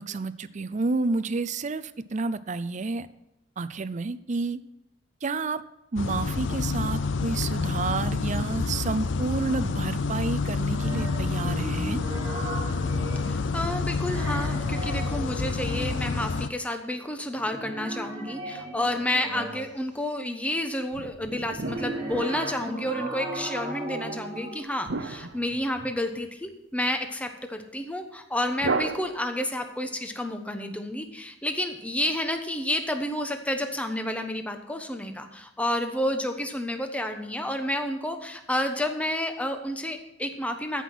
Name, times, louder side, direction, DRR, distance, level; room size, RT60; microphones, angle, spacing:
voice 1, 0.0-3.1 3.6-4.6 5.2-5.6 5.9-12.0, right 3 dB, 40° right, 14 dB, 0.5 m, -30 dB
sound 1, 6.0-16.5, left 4 dB, 75° left, 0.5 m, -28 dB
sound 2, 10.7-13.6 13.9-16.2 17.3-19.9 21.3-24.6, right 2 dB, 20° right, 1.7 m, -37 dB
voice 2, 13.3-40.8, left 1 dB, 5° left, 6 dB, 1.0 m, -30 dB
sound 3, 20.9-23.0 24.9-26.2 28.6-29.6, right 3 dB, 80° right, 0.8 m, -34 dB
14.0 x 5.9 x 6.1 m, 0.88 s
head